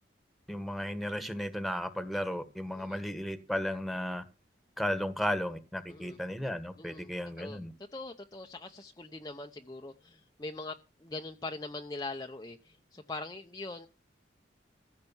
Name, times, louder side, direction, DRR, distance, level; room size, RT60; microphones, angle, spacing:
voice 1, 0.5-4.2 4.8-7.7, equal, ahead, 10 dB, 1.5 m, -34 dB
voice 2, 6.8-7.1 7.4-7.6 7.9-13.9, left 2 dB, 20° left, 4 dB, 0.7 m, -42 dB
15.5 x 6.7 x 7.1 m, 0.32 s
head